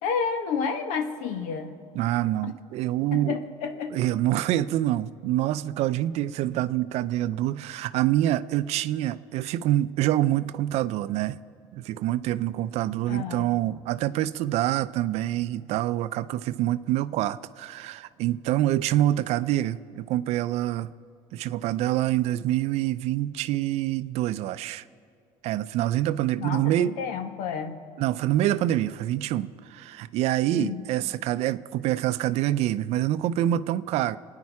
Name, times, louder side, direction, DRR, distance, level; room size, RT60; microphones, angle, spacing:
voice 1, 0.0-1.7 2.4-2.5 3.1-3.9 13.1-13.5 26.4-27.8 30.5-30.8, left 6 dB, 80° left, 7 dB, 1.4 m, -30 dB
voice 2, 1.9-3.4 3.9-11.4 11.7-20.9 21.3-24.8 25.4-27.0 28.0-34.2, right 13 dB, 65° right, 15 dB, 0.5 m, -26 dB
26.0 x 9.8 x 4.8 m, 2.4 s
cardioid pair, 115°, 12 cm